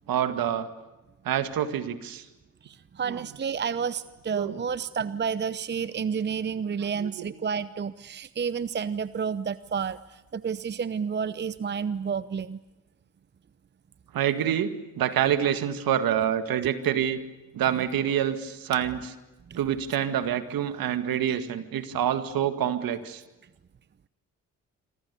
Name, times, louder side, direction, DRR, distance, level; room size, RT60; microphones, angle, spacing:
voice 1, 0.1-0.7 1.2-2.3 3.1-3.2 4.3-4.6 7.0-7.3 14.1-17.2 17.5-19.1 19.6-23.2, right 10 dB, 60° right, 10 dB, 2.0 m, -27 dB
voice 2, 2.6-12.6 19.5-19.6, right 6 dB, 30° right, 16 dB, 0.8 m, -30 dB
27.5 x 25.0 x 7.0 m, 1.1 s
hypercardioid pair, 50°, 38 cm